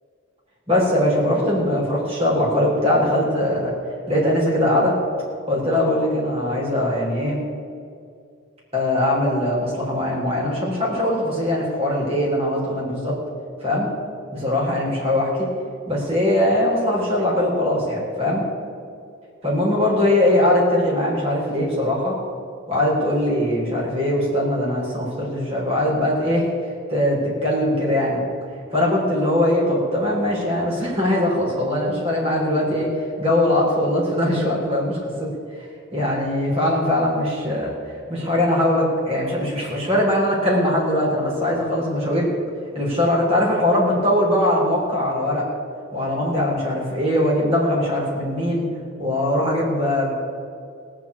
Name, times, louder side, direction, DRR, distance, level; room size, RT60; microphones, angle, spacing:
voice 1, 0.7-3.7 4.1-4.9 5.5-7.4 8.7-13.1 13.6-13.9 14.3-15.5 15.9-18.5 19.4-22.1 22.7-26.5 26.9-28.2 28.7-35.3 35.9-37.7 38.1-42.3 42.7-45.5 45.9-48.7 49.0-50.1, left 1 dB, 30° right, -5 dB, 4.3 m, -21 dB
18.0 x 6.2 x 8.5 m, 2.3 s
head